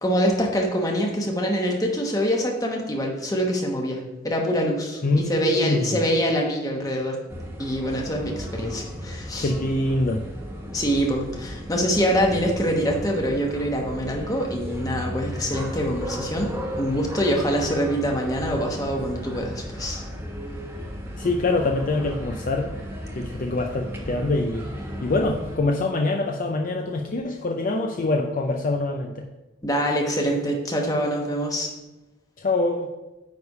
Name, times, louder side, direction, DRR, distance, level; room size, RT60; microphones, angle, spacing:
voice 1, 0.0-5.0 5.3-7.2 7.6-9.5 10.7-16.5 16.8-20.0 29.6-31.7, equal, 15° left, 0 dB, 1.0 m, -25 dB
voice 2, 5.0-6.0 9.4-10.2 21.2-22.7 23.1-24.7 25.0-29.3 32.4-32.9, left 2 dB, 40° left, 2 dB, 0.5 m, -24 dB
sound 1, 7.3-25.6, equal, 10° right, 1.1 m, -35 dB
9.3 x 3.4 x 5.4 m, 1.0 s
head